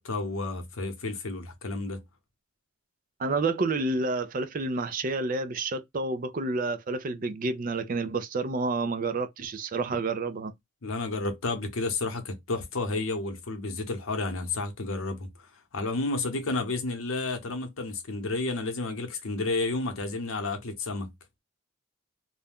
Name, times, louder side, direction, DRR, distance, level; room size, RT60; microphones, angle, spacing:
voice 1, 0.0-2.0 10.8-15.3 15.7-21.1, left 3 dB, 75° left, 0.8 m, -31 dB
voice 2, 3.2-10.5, right 3 dB, 40° right, 0.4 m, -29 dB
2.5 x 2.2 x 3.4 m
head